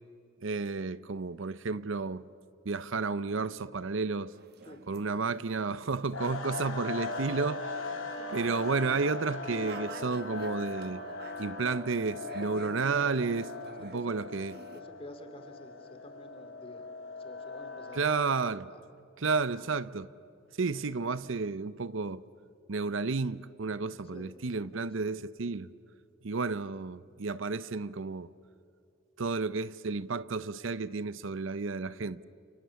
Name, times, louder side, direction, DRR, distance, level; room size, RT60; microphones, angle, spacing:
voice 1, 0.4-2.2 2.6-4.3 4.9-7.9 8.3-11.0 11.4-13.5 13.8-14.6 17.9-18.7 19.2-20.1 20.6-22.2 22.7-25.7 26.2-28.3 29.2-32.2, right 4 dB, 65° right, 0.7 m, -32 dB
sound 1, 4.3-14.1 14.4-14.8, right 3 dB, 50° right, 1.2 m, -49 dB
sound 2, 6.1-18.5, left 3 dB, 70° left, 5.6 m, -40 dB
voice 2, 13.9-14.3 14.7-16.9 17.2-18.8 24.1-24.3 24.6-24.9, left 1 dB, 25° left, 2.6 m, -50 dB
29.0 x 29.0 x 7.1 m
head